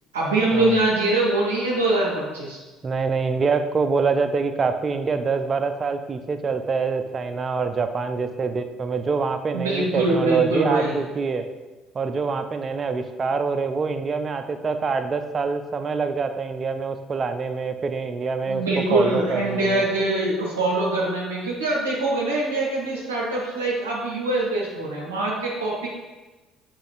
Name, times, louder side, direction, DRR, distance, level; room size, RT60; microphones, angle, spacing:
voice 1, 0.1-2.6 9.5-10.9 18.5-25.9, right 2 dB, 80° right, -4 dB, 0.6 m, -23 dB
voice 2, 2.8-11.5 11.9-19.9, right 4 dB, 35° right, 8 dB, 0.4 m, -25 dB
6.5 x 3.1 x 2.5 m, 1.2 s
figure-of-eight pair, 55°, 0 cm